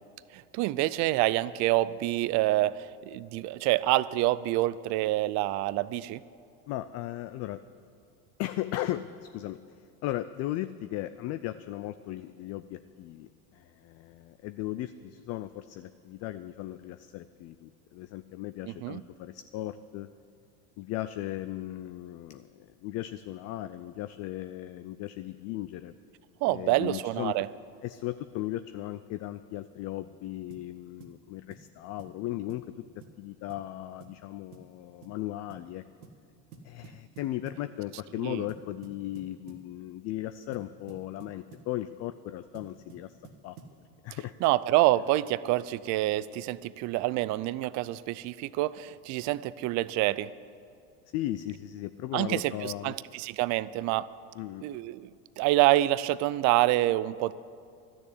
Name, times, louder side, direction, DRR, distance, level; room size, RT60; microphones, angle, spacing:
voice 1, 0.3-6.2 18.7-19.0 26.4-27.5 38.2-38.4 44.4-50.3 52.1-54.1 54.6-55.1 55.4-57.3, right 16 dB, 40° right, 18 dB, 0.4 m, -27 dB
voice 2, 6.7-7.6 8.4-20.1 20.8-26.0 26.4-27.4 27.8-32.6 33.2-35.8 36.6-43.2 43.4-43.6 44.0-44.3 45.0-45.1 51.1-52.9 54.4-54.8, left 14 dB, 40° left, 12 dB, 0.4 m, -37 dB
sound 1, 30.5-30.7 31.0-31.2 31.5-31.7 32.0-32.2 32.5-32.7 33.0-33.2 33.5-33.7 34.0-34.2 34.5-34.7 35.0-35.2 35.5-35.7 36.0-36.2 36.5-37.7 38.5-39.7 40.5-41.7 42.5-43.8, right 5 dB, 80° right, 1.6 m, -51 dB
12.0 x 7.0 x 9.9 m, 2.3 s
hypercardioid pair, 100°, 44 cm